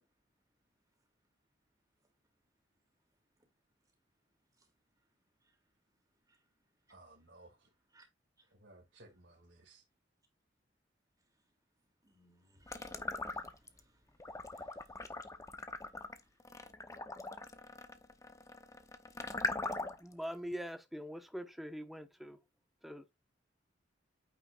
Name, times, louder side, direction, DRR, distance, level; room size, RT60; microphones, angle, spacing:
voice 1, 6.9-7.7 8.5-9.8, right 2 dB, 70° right, 2.3 m, -59 dB
voice 2, 12.0-15.4 16.1-16.2, right 2 dB, 20° right, 2.6 m, -69 dB
sound 1, 12.7-13.8 14.2-20.1, left 2 dB, 15° left, 0.7 m, -41 dB
voice 3, 19.8-22.4 22.8-23.1, equal, ahead, 1.0 m, -43 dB
9.0 x 5.6 x 2.4 m
head